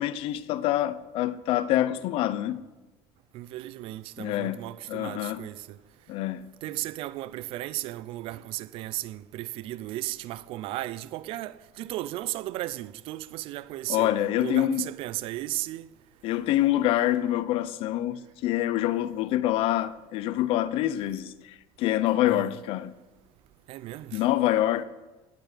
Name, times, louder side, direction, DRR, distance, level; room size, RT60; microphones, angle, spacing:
voice 1, 0.0-2.6 4.2-5.4 6.1-6.5 13.9-14.9 16.2-22.9 24.1-24.8, left 13 dB, 60° left, 0.8 m, -26 dB
voice 2, 3.3-5.8 6.6-15.9 22.3-22.5 23.7-24.2, right 16 dB, 60° right, 0.6 m, -35 dB
18.5 x 11.0 x 5.2 m
cardioid pair, 130°, 10 cm